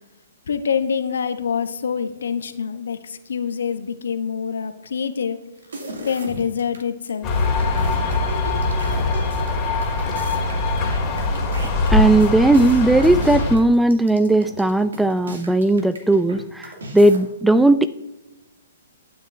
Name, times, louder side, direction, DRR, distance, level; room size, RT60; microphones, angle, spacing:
voice 1, 0.5-5.4 6.0-7.5, left 7 dB, 70° left, 10 dB, 0.8 m, -26 dB
sound 1, 5.6-6.8 7.1-7.2 7.4-16.4 16.6-17.2, right 1 dB, 75° right, 2.3 m, -35 dB
sound 2, 7.2-13.6, left 3 dB, 25° left, 2.2 m, -22 dB
voice 2, 11.9-17.9, right 2 dB, 5° right, 13 dB, 0.3 m, -17 dB
11.5 x 9.3 x 2.6 m, 0.98 s
hypercardioid pair, 125°, 0 cm